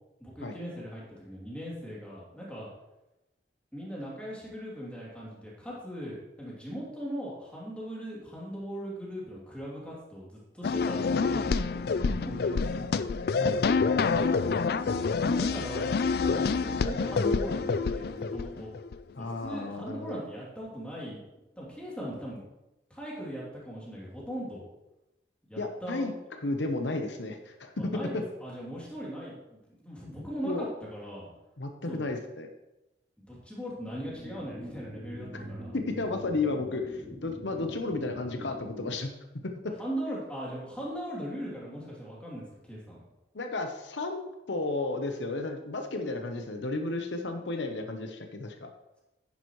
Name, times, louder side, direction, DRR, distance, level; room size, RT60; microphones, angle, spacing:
voice 1, 0.2-2.7 3.7-13.0 15.2-18.7 19.2-21.2 21.5-22.4 22.9-24.6 25.5-26.1 27.8-31.3 31.9-32.0 33.2-35.8 39.8-43.0, equal, 5° left, -5 dB, 3.0 m, -39 dB
sound 1, 10.6-18.9, left 4 dB, 60° left, 0.4 m, -27 dB
voice 2, 13.4-13.9 19.1-20.2 25.6-26.1 26.4-27.9 30.4-30.7 31.6-32.5 35.3-35.4 35.7-39.1 39.4-39.7 43.3-48.7, left 2 dB, 80° left, 5 dB, 0.9 m, -33 dB
sound 2, 33.9-39.0, equal, 20° right, 2.7 m, -44 dB
10.5 x 9.8 x 3.2 m, 0.96 s
head